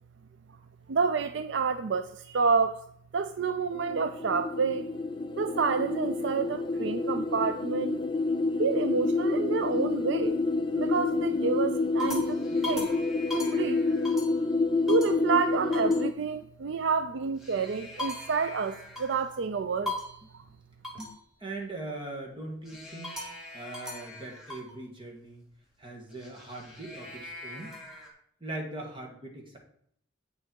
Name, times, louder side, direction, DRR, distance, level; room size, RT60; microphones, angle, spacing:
voice 1, 0.9-2.9 3.1-4.9 5.3-8.0 8.6-10.4 10.8-12.4 12.6-13.0 13.3-13.8 14.9-20.0 20.3-20.4, right 5 dB, 65° right, 0.4 m, -29 dB
sound 1, 3.7-16.1, left 3 dB, 25° left, 0.4 m, -28 dB
sound 2, 9.6-10.2 10.8-11.2 11.6-14.5 14.9-15.2 15.7-16.0 17.2-19.3 19.8-20.3 20.8-21.2 22.6-24.7 26.1-28.1, left 2 dB, ahead, 1.9 m, -40 dB
voice 2, 21.0-23.2 23.5-25.4 25.8-27.7 28.4-29.6, right 2 dB, 25° right, 1.9 m, -40 dB
8.2 x 6.6 x 4.6 m
head